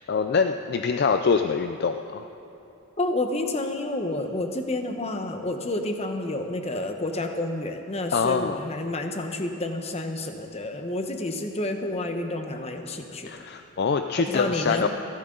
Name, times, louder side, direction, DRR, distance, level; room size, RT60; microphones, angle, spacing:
voice 1, 0.0-2.3 8.1-8.6 13.2-14.9, left 5 dB, 45° left, 7 dB, 0.4 m, -24 dB
voice 2, 3.0-13.3 14.2-14.9, left 2 dB, 30° left, 5 dB, 1.0 m, -29 dB
29.0 x 11.5 x 3.9 m, 2.9 s
head